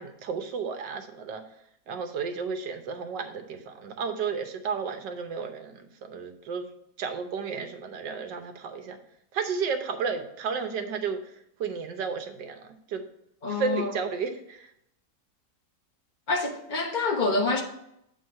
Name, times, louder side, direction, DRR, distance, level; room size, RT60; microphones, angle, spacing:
voice 1, 0.0-1.4 1.9-6.7 7.0-9.0 9.3-11.2 11.6-13.0 13.5-14.7, right 5 dB, 90° right, 1.6 m, -32 dB
voice 2, 13.4-13.9 16.3-17.6, left 3 dB, 35° left, 1.0 m, -27 dB
7.9 x 4.3 x 5.5 m
omnidirectional pair, 1.8 m